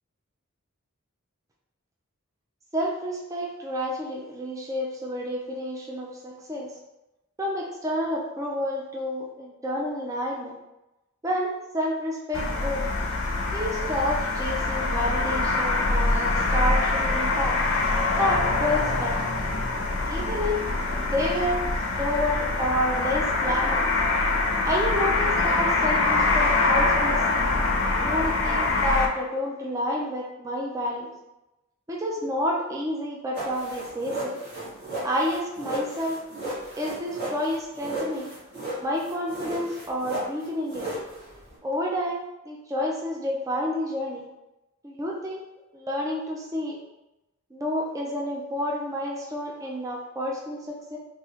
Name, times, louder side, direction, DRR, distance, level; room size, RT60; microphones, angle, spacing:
voice 1, 2.7-6.7 7.4-10.5 11.2-12.9 13.5-17.6 18.1-19.2 20.0-20.6 21.1-21.6 21.9-23.9 24.6-27.5 28.0-31.1 31.9-34.4 35.0-36.2 36.7-38.3 38.8-40.9 41.6-44.2 44.8-45.4 45.7-46.8 47.5-51.0, left 1 dB, 15° right, -2 dB, 0.3 m, -29 dB
sound 1, 12.3-29.1, left 3 dB, 65° left, 0.5 m, -24 dB
sound 2, 33.3-41.6, right 2 dB, 50° right, 1.5 m, -35 dB
3.8 x 2.4 x 3.0 m, 0.97 s
head